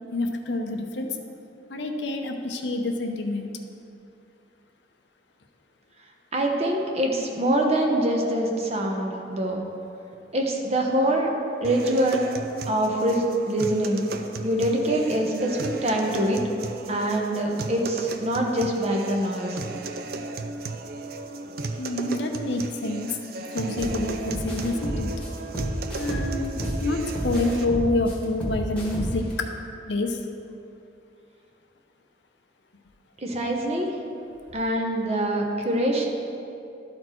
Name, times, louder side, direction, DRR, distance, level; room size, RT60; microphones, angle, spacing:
voice 1, 0.1-1.1 1.7-3.5 21.8-23.2 23.5-25.1 25.9-29.5 29.9-30.2, left 2 dB, 75° left, 4 dB, 0.7 m, -27 dB
voice 2, 6.3-9.6 10.3-11.3 11.6-12.2 12.7-14.1 14.4-16.4 16.9-19.6 33.2-34.0 34.5-36.1, right 1 dB, 35° right, 1 dB, 1.0 m, -24 dB
sound 1, 11.6-27.7, right 3 dB, 55° right, 0.5 m, -35 dB
sound 2, 23.8-23.9 24.3-26.8 27.1-29.3, equal, 10° left, 1.5 m, -31 dB
12.5 x 4.3 x 4.4 m, 2.6 s
head